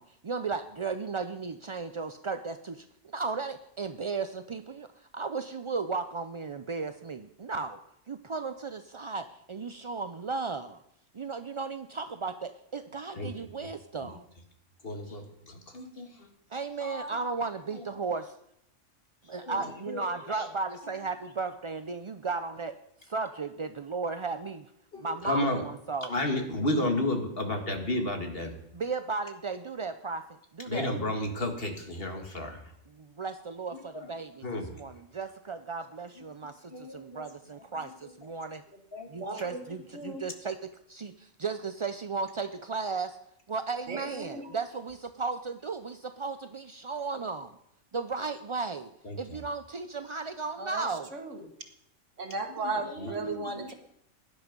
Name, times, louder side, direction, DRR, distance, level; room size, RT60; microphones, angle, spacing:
voice 1, 0.0-2.8 3.1-4.9 5.1-7.8 8.1-10.8 11.1-14.2 16.5-18.3 19.3-22.8 23.0-24.6 25.0-26.1 26.6-27.0 28.7-30.2 30.5-30.9 32.9-38.6 39.1-40.6 40.9-43.2 43.5-47.5 47.9-48.9 49.2-51.1, right 4 dB, 50° right, 9 dB, 0.3 m, -35 dB
voice 2, 14.8-16.1 16.8-17.1 19.4-20.0 20.3-20.5 24.9-25.6 26.1-28.5 30.7-32.6 33.9-34.1 34.4-34.7 36.7-37.2 38.9-39.1 49.1-49.4 52.8-53.7, left 1 dB, 45° left, 4 dB, 2.0 m, -32 dB
voice 3, 39.2-39.6 39.9-40.3 43.9-44.5 50.6-51.4 52.2-53.7, right 3 dB, 65° right, 6 dB, 1.9 m, -36 dB
16.5 x 10.5 x 5.3 m, 0.74 s
omnidirectional pair, 1.3 m